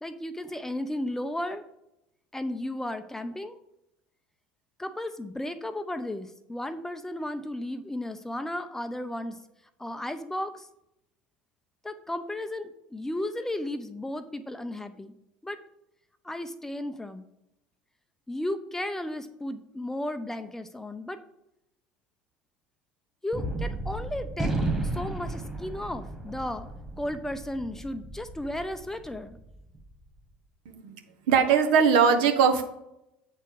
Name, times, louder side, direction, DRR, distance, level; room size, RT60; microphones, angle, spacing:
voice 1, 0.0-1.6 2.3-3.6 4.8-9.4 9.8-10.7 11.8-15.1 15.4-15.6 16.2-17.2 18.3-21.2 23.2-24.5 24.9-26.7 27.0-29.4, left 1 dB, 10° left, 10 dB, 0.6 m, -34 dB
Gunshot gunfire, 23.3-29.9, right 2 dB, 5° right, 1.8 m, -34 dB
voice 2, 31.3-32.6, right 6 dB, 65° right, 6 dB, 1.0 m, -20 dB
8.0 x 4.4 x 6.2 m, 0.84 s
figure-of-eight pair, 70°, 5 cm